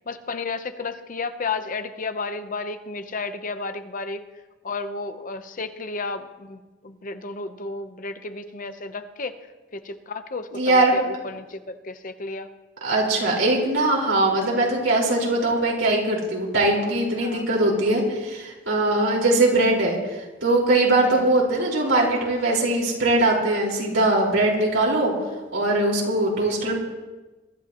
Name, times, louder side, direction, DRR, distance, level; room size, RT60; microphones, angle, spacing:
voice 1, 0.1-4.2 4.6-9.3 9.7-12.5 17.2-17.4 21.0-21.3 26.4-26.5, left 3 dB, 45° left, 9 dB, 0.9 m, -32 dB
voice 2, 10.5-11.0 12.8-25.1 25.5-26.8, right 2 dB, 90° right, -2 dB, 4.6 m, -21 dB
22.5 x 13.5 x 3.0 m, 1.2 s
head